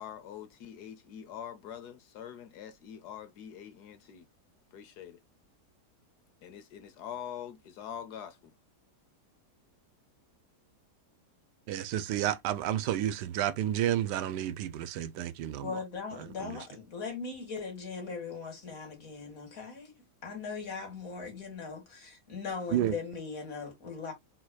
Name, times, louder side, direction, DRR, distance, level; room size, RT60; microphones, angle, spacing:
voice 1, 0.0-4.3 4.7-5.2 6.4-8.5, left 9 dB, 75° left, 1.3 m, -44 dB
voice 2, 11.7-15.8 16.2-16.6 22.7-23.0, right 11 dB, 85° right, 1.2 m, -31 dB
voice 3, 15.6-19.9 20.2-24.1, left 5 dB, 55° left, 2.4 m, -39 dB
4.9 x 4.0 x 2.2 m
omnidirectional pair, 1.8 m